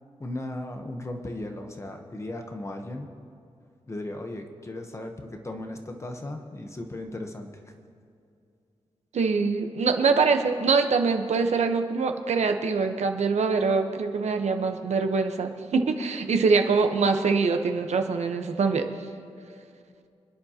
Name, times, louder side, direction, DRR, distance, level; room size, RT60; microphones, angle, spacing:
voice 1, 0.2-3.1 3.9-7.5, left 1 dB, 25° left, 4 dB, 1.0 m, -36 dB
voice 2, 9.1-18.9, right 4 dB, 75° right, 6 dB, 1.0 m, -24 dB
27.5 x 10.5 x 2.9 m, 2.5 s
wide cardioid pair, 150°, 12 cm